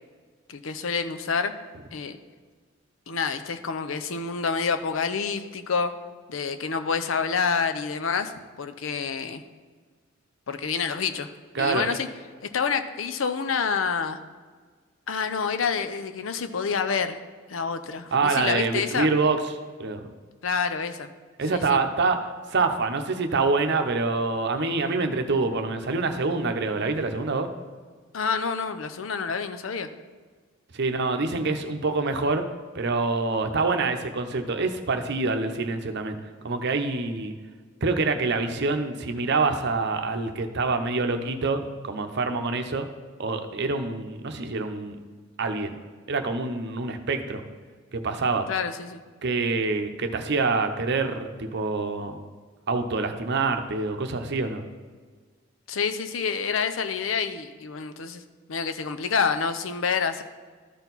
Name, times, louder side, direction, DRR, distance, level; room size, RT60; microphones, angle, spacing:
voice 1, 0.5-1.5 1.9-2.2 3.1-5.9 6.3-8.3 8.6-9.4 10.5-11.3 11.6-12.1 12.4-14.2 15.1-17.2 17.5-19.1 20.4-21.1 21.5-21.8 28.1-29.9 48.5-49.0 55.7-58.2 58.5-60.2, left 5 dB, 75° left, 9 dB, 0.6 m, -28 dB
voice 2, 11.5-11.9 18.1-19.4 19.8-20.0 21.4-27.5 30.7-32.5 32.7-36.2 36.4-37.3 37.8-42.9 43.2-45.0 45.4-45.7 46.1-47.4 47.9-48.5 49.2-52.2 52.7-54.6, right 3 dB, 60° right, 6 dB, 0.7 m, -26 dB
13.0 x 4.5 x 4.0 m, 1.5 s
head